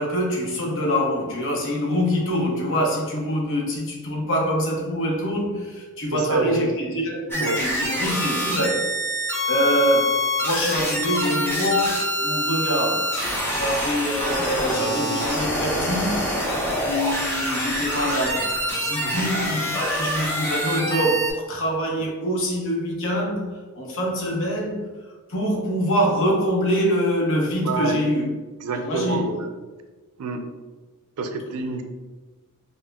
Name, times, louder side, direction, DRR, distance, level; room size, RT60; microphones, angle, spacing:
voice 1, 0.0-8.9 9.5-13.1 13.5-16.2 16.8-23.5 23.8-24.8 25.3-28.3 28.7-29.3, equal, 60° left, 0 dB, 0.8 m, -25 dB
voice 2, 6.1-6.7 7.4-7.6 19.0-19.3 27.6-28.0 28.6-29.5 30.2-30.4 31.2-31.8, right 3 dB, 80° right, 6 dB, 0.4 m, -27 dB
sound 1, 7.3-21.3, equal, 10° left, 0.5 m, -25 dB
5.2 x 2.1 x 2.3 m, 1.3 s
head